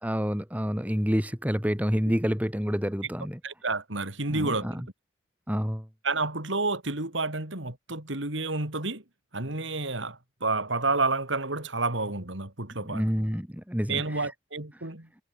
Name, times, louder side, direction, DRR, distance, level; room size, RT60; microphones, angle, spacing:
voice 1, 0.0-3.4 4.3-4.8 5.5-5.9 12.9-14.3, equal, 10° right, 2.8 m, -28 dB
voice 2, 3.4-4.8 6.0-9.0 9.3-13.0 13.9-15.1, right 3 dB, 75° right, 3.7 m, -30 dB
head